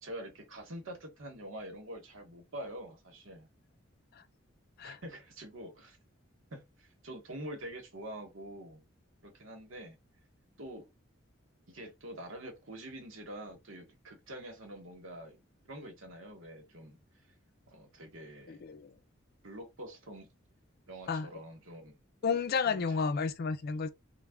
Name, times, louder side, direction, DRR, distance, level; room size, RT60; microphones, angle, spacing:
voice 1, 0.0-3.5 4.8-6.0 6.5-8.8 9.2-10.0 10.6-10.9 11.7-15.4 15.6-17.0 17.7-18.6 19.4-20.3 20.9-22.0 22.6-23.0, right 1 dB, 70° right, 1.1 m, -46 dB
voice 2, 18.5-18.9 21.1-21.3 22.2-23.9, left 5 dB, 50° left, 0.4 m, -31 dB
3.2 x 2.2 x 3.5 m
head